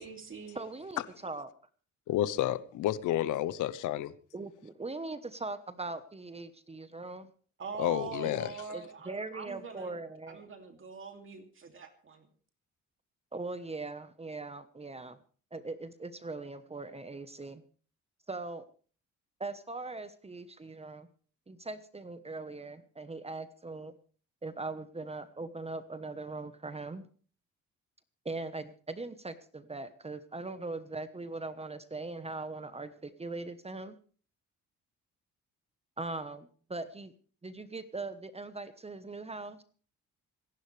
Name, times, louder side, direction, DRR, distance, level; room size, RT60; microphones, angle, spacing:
voice 1, 0.0-0.6 7.6-10.0 10.3-12.3, right 5 dB, 40° right, 2.6 m, -43 dB
voice 2, 0.5-1.5 4.3-7.3 8.7-10.4 13.3-15.2 15.5-17.6 18.3-18.6 19.4-21.1 21.5-23.9 24.4-27.1 28.2-34.0 36.0-37.1 37.4-39.6, right 3 dB, 20° right, 1.1 m, -40 dB
voice 3, 2.1-4.1 7.8-8.5, left 13 dB, 85° left, 0.8 m, -30 dB
26.5 x 11.0 x 3.3 m
cardioid pair, 90°, 30 cm